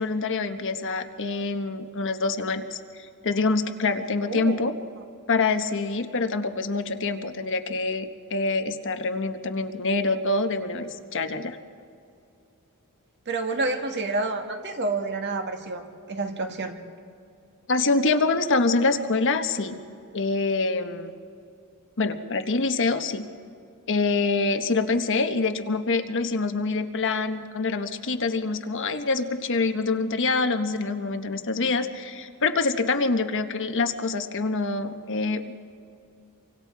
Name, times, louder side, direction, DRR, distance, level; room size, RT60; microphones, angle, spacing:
voice 1, 0.0-4.7 5.3-11.6 17.7-19.8 20.1-21.1 22.0-23.3 23.9-35.5, left 3 dB, 60° left, 7 dB, 1.2 m, -25 dB
voice 2, 4.2-4.6 13.3-15.8 16.1-16.8, right 3 dB, 50° right, 4 dB, 2.0 m, -28 dB
29.0 x 24.5 x 4.7 m, 2.5 s
head